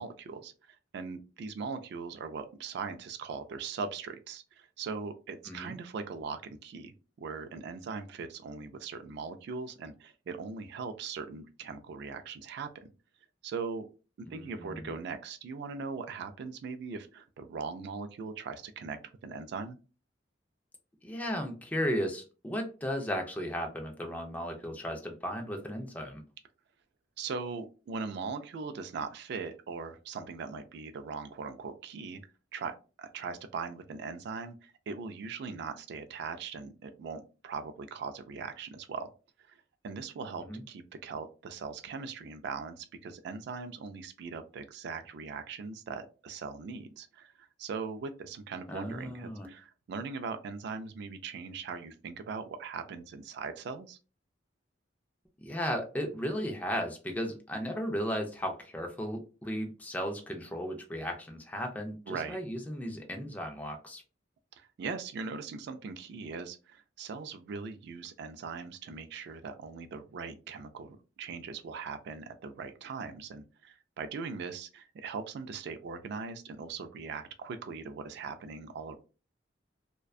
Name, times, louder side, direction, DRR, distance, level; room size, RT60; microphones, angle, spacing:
voice 1, 0.0-12.7 13.4-13.9 14.3-19.8 27.2-32.2 32.5-39.1 39.5-54.0 62.1-62.4 64.5-79.0, right 5 dB, 60° right, 9 dB, 0.3 m, -40 dB
voice 2, 14.3-14.9 21.0-26.2 40.4-40.6 48.7-49.5 55.4-64.0, equal, 10° left, 2 dB, 0.4 m, -35 dB
2.5 x 2.1 x 2.3 m, 0.34 s
head